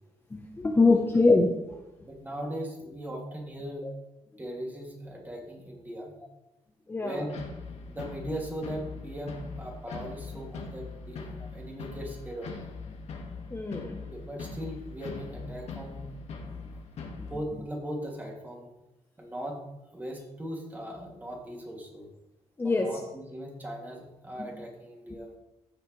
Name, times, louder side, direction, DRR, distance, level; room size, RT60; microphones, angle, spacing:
voice 1, 0.3-1.5 3.8-3.9 6.9-7.2 13.5-14.0 17.2-17.3 22.6-22.9 24.4-24.5, left 3 dB, 20° left, 2 dB, 0.9 m, -24 dB
voice 2, 2.0-3.9 4.4-6.1 7.0-7.4 7.9-12.7 14.1-16.1 17.3-18.7 19.2-19.6 19.9-22.1 22.6-25.3, equal, 15° right, -1 dB, 2.6 m, -39 dB
sound 1, 7.3-17.4, left 4 dB, 65° left, 1.7 m, -41 dB
15.0 x 6.5 x 3.3 m, 0.92 s
cardioid pair, 115°, 12 cm